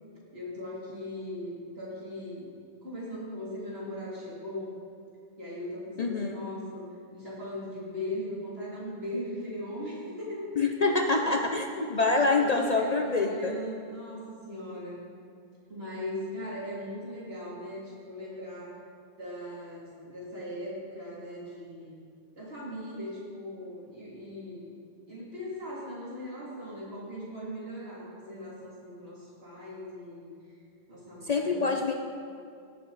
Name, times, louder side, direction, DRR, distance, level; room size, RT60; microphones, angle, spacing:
voice 1, 0.3-2.5 2.8-4.7 5.4-6.8 7.1-11.4 12.0-15.0 15.7-18.8 19.2-21.9 22.4-24.8 25.1-30.3 30.9-31.7, left 1 dB, 60° right, -7 dB, 3.2 m, -39 dB
voice 2, 6.0-6.4 10.6-13.6 31.2-31.9, left 3 dB, 45° left, 2 dB, 0.6 m, -26 dB
17.5 x 6.7 x 4.0 m, 2.4 s
omnidirectional pair, 1.1 m